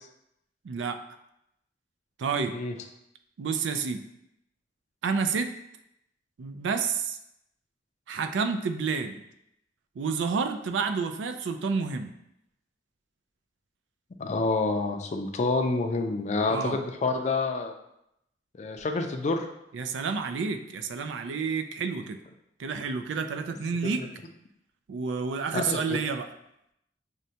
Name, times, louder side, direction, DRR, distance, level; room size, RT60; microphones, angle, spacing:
voice 1, 0.6-1.0 2.2-2.5 3.4-4.0 5.0-5.5 6.4-7.2 8.1-9.2 10.0-12.1 16.5-16.8 19.7-22.2 22.6-24.0 24.9-26.3, right 5 dB, 75° right, 7 dB, 0.4 m, -29 dB
voice 2, 14.2-17.7 18.6-19.5 23.9-24.1 25.5-26.0, left 3 dB, 40° left, 5 dB, 0.4 m, -28 dB
6.2 x 2.2 x 2.7 m, 0.81 s
head